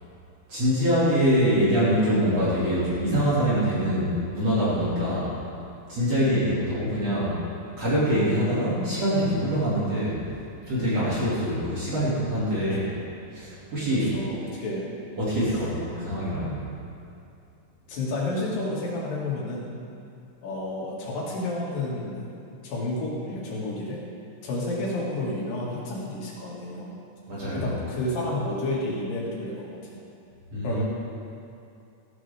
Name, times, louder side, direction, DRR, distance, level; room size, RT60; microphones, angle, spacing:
voice 1, 0.5-5.3 5.9-7.4 7.8-10.2 10.6-12.8 13.3-14.1 15.2-16.6 27.3-27.7 30.5-30.8, equal, 45° right, -10 dB, 3.5 m, -24 dB
voice 2, 6.2-7.2 12.6-13.0 13.9-14.9 17.9-19.7 20.4-22.3 22.6-24.0 24.4-26.9 27.5-30.0 30.6-30.8, left 2 dB, 70° left, -5 dB, 3.8 m, -31 dB
14.5 x 12.5 x 3.5 m, 2.7 s
omnidirectional pair, 4.2 m